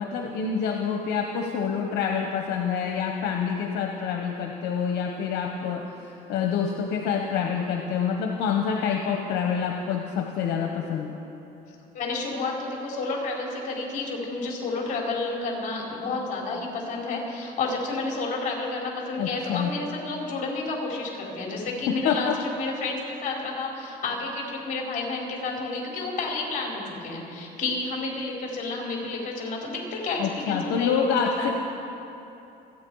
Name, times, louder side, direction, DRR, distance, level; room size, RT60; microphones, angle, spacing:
voice 1, 0.0-5.8 6.3-11.2 19.2-19.7 21.9-22.3 30.2-31.5, left 7 dB, 80° left, 2 dB, 1.1 m, -27 dB
voice 2, 11.9-31.5, left 3 dB, 50° left, -2 dB, 4.5 m, -30 dB
28.0 x 9.7 x 4.8 m, 2.9 s
cardioid pair, 110°, 17 cm